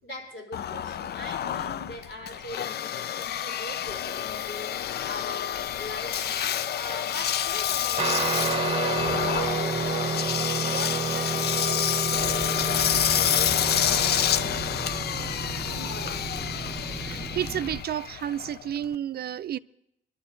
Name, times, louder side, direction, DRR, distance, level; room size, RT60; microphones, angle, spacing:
voice 1, 0.0-4.7 5.0-10.2 10.7-14.1 15.6-16.2, left 1 dB, 70° left, 4.3 m, -41 dB
Engine, 0.5-18.9, left 10 dB, 55° left, 0.4 m, -28 dB
Guitar, 8.0-17.7, right 5 dB, 30° right, 1.0 m, -31 dB
sound 1, 12.1-17.8, equal, 30° left, 1.8 m, -39 dB
voice 2, 17.0-19.6, right 10 dB, 55° right, 0.4 m, -31 dB
21.5 x 12.5 x 3.9 m
cardioid pair, 90°, 20 cm